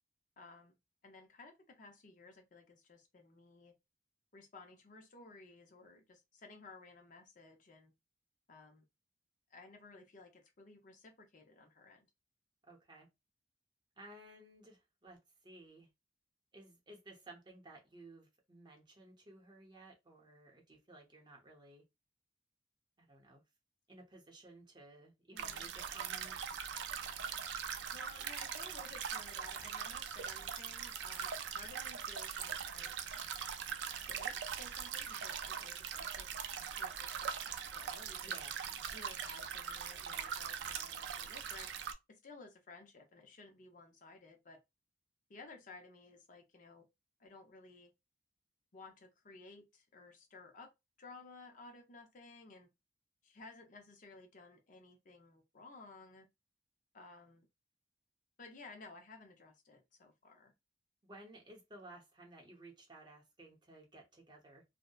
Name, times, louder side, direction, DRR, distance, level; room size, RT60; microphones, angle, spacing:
voice 1, 0.4-0.8 1.0-3.7 4.3-7.9 8.5-8.8 9.5-12.1 25.3-25.7 27.9-32.9 33.9-36.3 36.8-38.4 38.9-41.7 42.1-44.6 45.3-46.9 47.2-47.9 48.7-50.7 51.0-52.7 53.2-56.3 56.9-57.5 58.4-60.5, left 3 dB, 45° left, 0.5 m, -56 dB
voice 2, 12.6-13.1 14.0-15.9 16.5-21.8 23.0-23.4 23.9-26.4 38.2-38.7 61.0-64.6, right 2 dB, 25° right, 0.7 m, -56 dB
sound 1, 25.4-41.9, right 7 dB, 85° right, 0.3 m, -41 dB
2.7 x 2.0 x 2.2 m
head